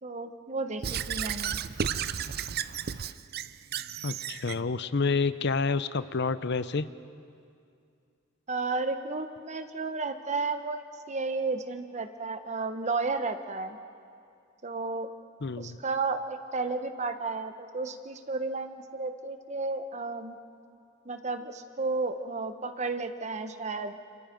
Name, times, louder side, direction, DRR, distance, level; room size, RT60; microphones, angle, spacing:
voice 1, 0.0-1.6 8.5-13.8 14.6-15.1 15.6-20.4 21.0-24.0, right 3 dB, 35° right, 8 dB, 1.1 m, -33 dB
Squeak / Writing, 0.8-4.6, right 8 dB, 50° right, 0.6 m, -33 dB
voice 2, 4.0-6.9 15.4-15.8, left 4 dB, 55° left, 14 dB, 0.7 m, -28 dB
29.0 x 28.0 x 5.3 m, 2.4 s
head